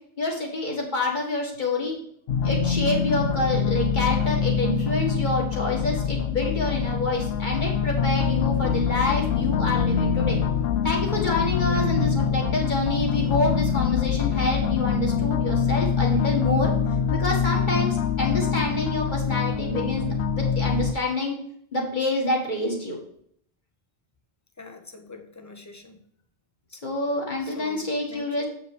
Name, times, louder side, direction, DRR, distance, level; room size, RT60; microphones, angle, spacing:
voice 1, 0.2-1.9 2.4-10.4 10.8-16.7 17.1-21.3 21.7-23.0 26.8-28.4, left 2 dB, 45° left, -1 dB, 2.0 m, -27 dB
sound 1, 2.3-20.9, left 7 dB, 65° left, 0.8 m, -24 dB
voice 2, 24.6-26.0 27.4-28.4, left 3 dB, 15° left, 6 dB, 0.8 m, -43 dB
8.1 x 5.1 x 4.8 m, 0.67 s
omnidirectional pair, 1.2 m